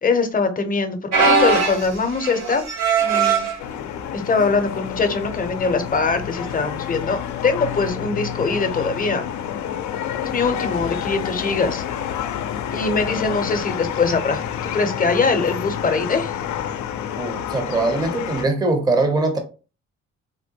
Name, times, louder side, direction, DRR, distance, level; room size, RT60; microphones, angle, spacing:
voice 1, 0.0-2.6 3.0-3.4 4.1-9.2 10.2-11.9 12.7-14.4 14.7-16.4, left 4 dB, 30° left, 0.7 m, -22 dB
sound 1, 1.1-3.6 4.3-4.6 4.9-5.0 5.9-6.2 7.8-7.9, right 4 dB, 60° right, 1.4 m, -20 dB
sound 2, 3.6-18.5, left 9 dB, 70° left, 0.5 m, -29 dB
voice 2, 17.2-19.4, right 2 dB, 15° right, 0.6 m, -21 dB
3.6 x 2.1 x 2.8 m
cardioid pair, 90°, 30 cm